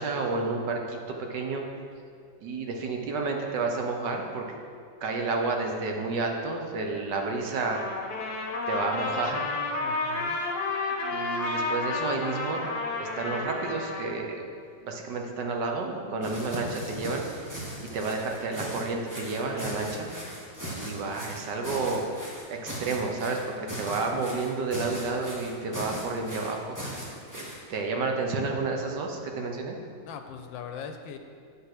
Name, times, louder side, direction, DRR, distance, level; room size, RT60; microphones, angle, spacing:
voice 1, 0.0-1.6 2.4-4.4 5.0-7.8 8.7-9.4 10.9-12.6 13.0-14.4 14.8-17.2 17.8-20.1 20.7-22.0 22.5-27.0 27.3-29.8, right 3 dB, 70° right, 2 dB, 1.5 m, -30 dB
Trumpet, 7.6-14.1, left 3 dB, 60° left, 1.6 m, -31 dB
voice 2, 9.8-10.4 30.0-31.2, left 7 dB, 85° left, 6 dB, 1.4 m, -40 dB
sound 1, 16.2-27.6, equal, 10° right, 1.2 m, -38 dB
8.3 x 5.6 x 5.9 m, 2.4 s
omnidirectional pair, 2.0 m